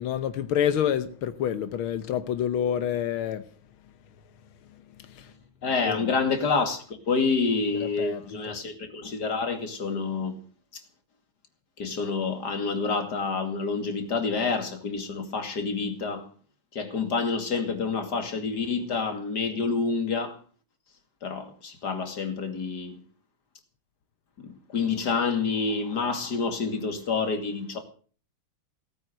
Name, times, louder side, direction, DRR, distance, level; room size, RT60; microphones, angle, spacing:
voice 1, 0.0-3.4 5.0-5.3 5.9-6.0 7.7-8.2 8.5-8.6, left 9 dB, 85° left, 1.8 m, -28 dB
voice 2, 5.6-10.4 10.7-10.8 11.8-16.3 16.7-20.4 21.2-23.0 24.4-27.8, left 4 dB, 55° left, 3.0 m, -28 dB
18.0 x 9.2 x 8.0 m
omnidirectional pair, 2.2 m